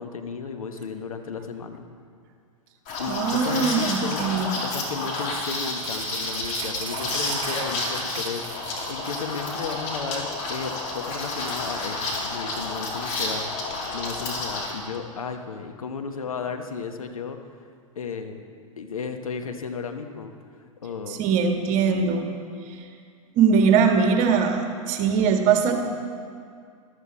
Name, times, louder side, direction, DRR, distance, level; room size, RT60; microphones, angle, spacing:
voice 1, 0.0-1.9 3.0-4.2 4.6-17.4 18.0-18.4 18.8-20.3 20.8-21.2, left 5 dB, 80° left, 6 dB, 1.1 m, -34 dB
Liquid, 2.9-14.7, left 2 dB, 40° left, 2.8 m, -30 dB
voice 2, 3.1-4.5 21.1-22.3 22.7-22.8 23.3-25.7, right 6 dB, 45° right, 4 dB, 1.6 m, -21 dB
sound 1, 3.6-9.4 9.7-9.8 10.2-10.3 10.6-10.8 11.2-12.1 12.6-12.7, right 8 dB, 65° right, 1.1 m, -41 dB
12.5 x 12.5 x 4.2 m, 2.2 s
hypercardioid pair, 100°, 18 cm